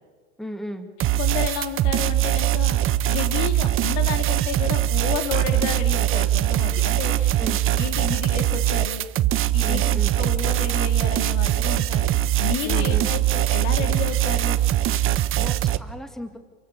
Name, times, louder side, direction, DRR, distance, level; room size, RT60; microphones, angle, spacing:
voice 1, 0.4-0.9 7.4-7.6 9.6-10.1 12.6-13.1 15.1-16.4, equal, ahead, 7 dB, 2.3 m, -35 dB
sound 1, 1.0-15.8, right 13 dB, 35° right, 1.1 m, -22 dB
voice 2, 1.2-7.4 7.8-9.0 9.5-12.1 12.4-14.6, left 7 dB, 65° left, 6 dB, 3.5 m, -31 dB
29.5 x 23.5 x 7.0 m, 1.4 s
supercardioid pair, 110°, 35 cm